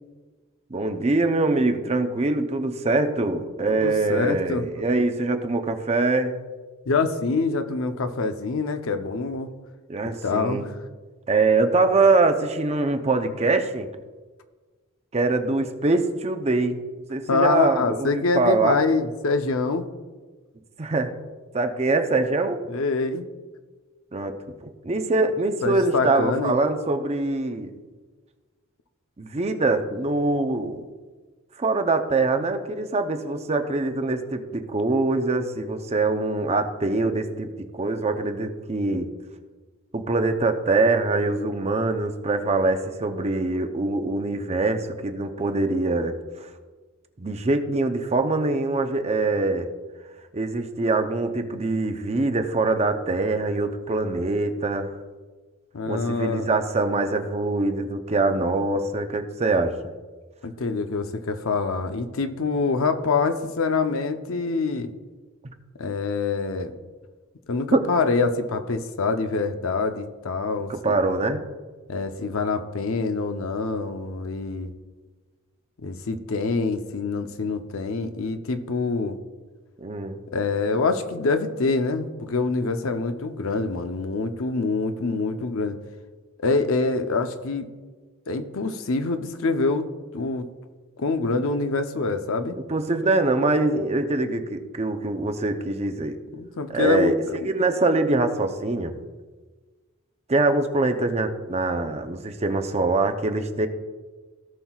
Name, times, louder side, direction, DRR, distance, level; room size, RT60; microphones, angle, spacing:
voice 1, 0.7-6.4 9.9-10.7 11.3-13.9 15.1-16.8 17.1-18.8 20.8-21.1 21.5-22.6 24.1-24.3 24.6-27.7 29.2-30.8 31.6-37.5 37.7-39.1 39.9-46.5 47.2-49.7 50.3-54.9 55.9-59.7 65.4-65.5 67.7-67.9 70.7-71.4 79.8-80.2 92.5-96.2 96.7-98.9 100.3-103.7, right 3 dB, 30° right, 7 dB, 0.6 m, -23 dB
voice 2, 3.7-4.8 6.9-9.5 10.2-10.8 17.3-19.9 22.7-23.3 25.6-26.6 55.7-56.5 60.4-64.9 65.8-66.7 67.5-70.9 71.9-74.7 75.8-79.2 80.3-85.8 86.4-87.7 88.3-89.9 90.1-90.5 91.0-92.6 96.4-97.5, left 4 dB, 65° left, 8 dB, 0.7 m, -25 dB
17.0 x 5.9 x 2.4 m, 1.4 s
head